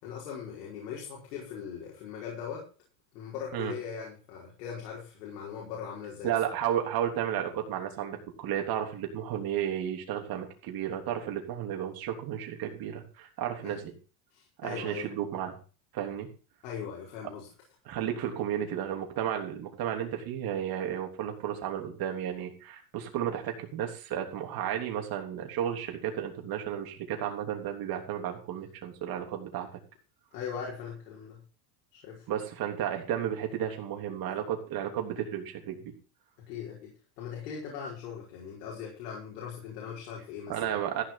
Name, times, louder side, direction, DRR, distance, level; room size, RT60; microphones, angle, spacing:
voice 1, 0.0-2.7 3.1-6.3 13.6-13.8 14.3-15.1 16.6-17.5 30.3-31.4 31.9-32.3 36.5-40.8, left 7 dB, 85° left, -3 dB, 5.2 m, -40 dB
voice 2, 6.2-13.9 14.6-15.6 15.9-16.3 17.9-29.7 32.3-35.8 40.5-41.0, right 10 dB, 45° right, 3 dB, 3.3 m, -33 dB
14.5 x 6.8 x 6.0 m, 0.35 s
supercardioid pair, 130°, 47 cm